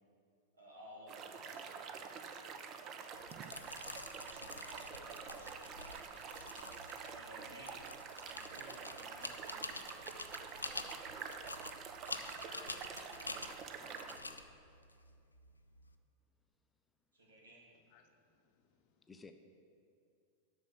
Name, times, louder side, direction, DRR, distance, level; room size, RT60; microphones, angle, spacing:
voice 1, 0.5-2.2 2.5-3.0 4.3-5.9 6.2-7.7 8.3-9.9 10.6-11.1 11.9-12.2 17.1-17.6, equal, 75° right, -4 dB, 2.3 m, -58 dB
sound 1, 1.1-14.2, right 6 dB, 35° right, 0.6 m, -47 dB
sound 2, 3.1-15.9, left 2 dB, 80° left, 0.4 m, -48 dB
voice 2, 12.0-13.5 17.9-18.8, left 6 dB, 45° left, 6 dB, 0.8 m, -60 dB
voice 3, 13.4-14.6 19.1-19.3, left 4 dB, 15° left, 6 dB, 0.5 m, -58 dB
8.3 x 6.2 x 6.4 m, 2.4 s
figure-of-eight pair, 90°, 0 cm